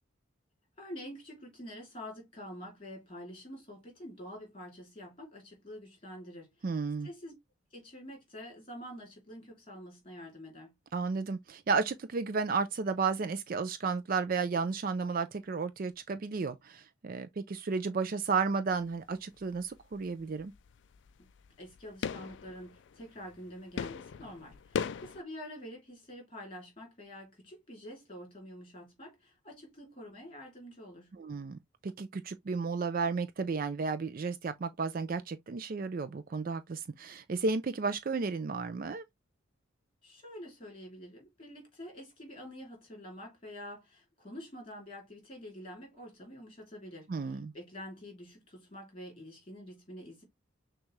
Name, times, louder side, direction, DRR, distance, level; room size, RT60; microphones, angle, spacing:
voice 1, 0.8-6.7 7.0-7.3 7.7-10.7 21.6-31.2 40.0-50.2, equal, 25° left, 2.8 m, -47 dB
voice 2, 6.6-7.1 10.9-20.5 31.2-39.0 47.1-47.5, right 4 dB, 40° right, 0.4 m, -33 dB
sound 1, 18.7-19.1 19.4-25.2, left 6 dB, 55° left, 0.3 m, -40 dB
6.3 x 2.4 x 3.1 m
head